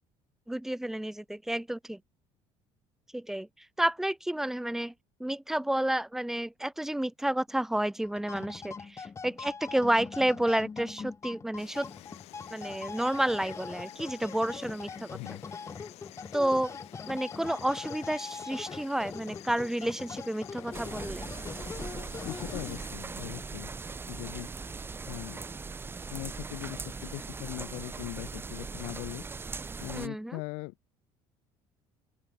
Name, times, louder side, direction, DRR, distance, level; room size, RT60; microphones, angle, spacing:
voice 1, 0.5-2.0 3.1-3.5 3.8-4.9 5.2-11.9 12.5-15.1 16.3-16.7 17.1-21.3 29.9-30.4, right 1 dB, 5° right, 1.6 m, -30 dB
sound 1, 8.0-23.0, left 5 dB, 25° left, 3.3 m, -42 dB
Insect, 11.6-22.9, left 17 dB, 70° left, 3.8 m, -51 dB
voice 2, 15.1-15.4 22.2-23.7 24.1-24.5 25.1-25.4 26.1-29.2 29.8-30.7, left 28 dB, 85° left, 3.5 m, -40 dB
sound 2, 20.7-30.1, right 4 dB, 20° right, 1.1 m, -40 dB
open air
cardioid pair, 115°, 11 cm